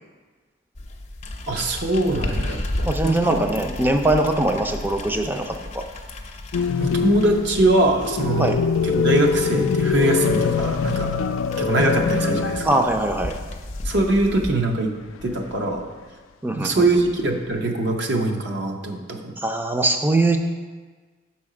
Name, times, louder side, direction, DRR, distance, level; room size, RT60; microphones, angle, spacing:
sound 1, 0.7-14.5, left 1 dB, 40° left, 0.6 m, -34 dB
voice 1, 1.5-3.4 6.8-8.5 8.8-11.1 11.6-12.9 13.8-14.9 15.2-15.9 16.5-19.4, right 2 dB, 60° right, 2 dB, 0.7 m, -22 dB
voice 2, 2.9-5.8 8.4-8.6 12.6-13.4 16.4-17.0 19.4-20.4, right 2 dB, 10° right, 5 dB, 0.4 m, -22 dB
sound 2, 6.5-13.1 13.3-13.4 15.1-15.8 16.9-17.6, left 6 dB, 85° left, 0.3 m, -23 dB
6.3 x 4.2 x 4.9 m, 1.4 s
head